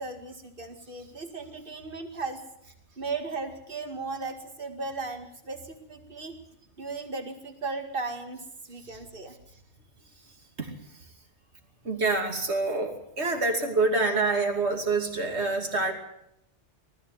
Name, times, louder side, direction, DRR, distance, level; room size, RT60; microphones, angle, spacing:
voice 1, 0.0-2.4 3.0-6.3 6.8-9.3, right 3 dB, 45° right, 6 dB, 2.4 m, -36 dB
voice 2, 11.8-15.9, right 3 dB, 65° right, 4 dB, 3.0 m, -26 dB
19.5 x 14.0 x 9.4 m, 0.78 s
omnidirectional pair, 1.2 m